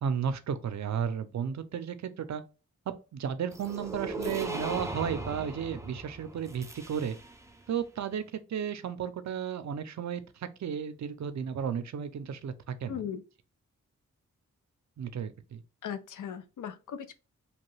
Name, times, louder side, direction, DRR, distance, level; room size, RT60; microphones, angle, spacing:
voice 1, 0.0-2.4 2.9-7.2 7.7-13.0 15.0-15.6, right 7 dB, 65° right, 0.5 m, -34 dB
sound 1, 3.5-7.5, right 2 dB, 10° right, 0.4 m, -38 dB
voice 2, 12.9-13.2 15.8-17.1, left 8 dB, 80° left, 0.5 m, -38 dB
2.9 x 2.2 x 3.1 m
wide cardioid pair, 85°, 31 cm